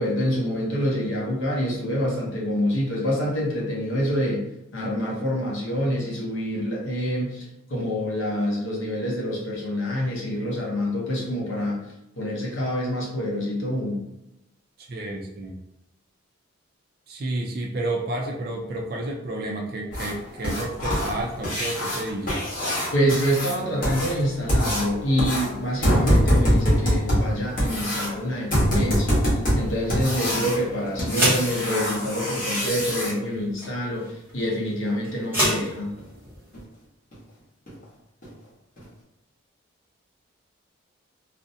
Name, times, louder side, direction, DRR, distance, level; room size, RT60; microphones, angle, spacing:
voice 1, 0.0-4.5 4.7-11.8 12.2-14.1 22.9-29.2 29.6-36.0, equal, 70° left, -2 dB, 0.7 m, -26 dB
voice 2, 14.8-15.5 17.1-22.5 33.3-33.4, right 2 dB, 50° right, 0 dB, 0.3 m, -31 dB
sound 1, 19.9-33.1 35.4-35.5 36.0-36.1 36.5-36.6 37.1-37.2 37.7-37.8 38.2-38.3 38.8-38.9, equal, 40° left, 0.9 m, -24 dB
sound 2, 28.9-36.6, equal, 10° right, 0.8 m, -31 dB
2.5 x 2.0 x 2.6 m, 0.89 s
head